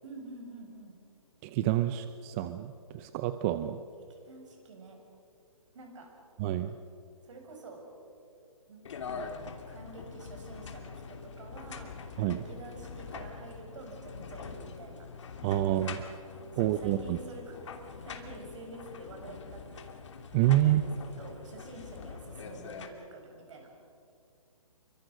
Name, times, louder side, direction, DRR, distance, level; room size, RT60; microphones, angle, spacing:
voice 1, 0.0-1.0 4.1-5.0 5.7-6.1 7.2-7.9 8.7-11.9 12.3-15.1 15.8-16.2 16.5-19.9 20.6-23.7, right 2 dB, 60° right, 2 dB, 7.7 m, -48 dB
voice 2, 1.4-3.8 6.4-6.7 12.2-12.4 15.4-16.0 16.6-17.2 20.3-20.8, right 13 dB, 25° right, 10 dB, 0.7 m, -28 dB
sound 1, 8.9-22.9, left 5 dB, 55° left, 2.7 m, -44 dB
28.0 x 24.0 x 6.5 m, 2.5 s
hypercardioid pair, 140°, 18 cm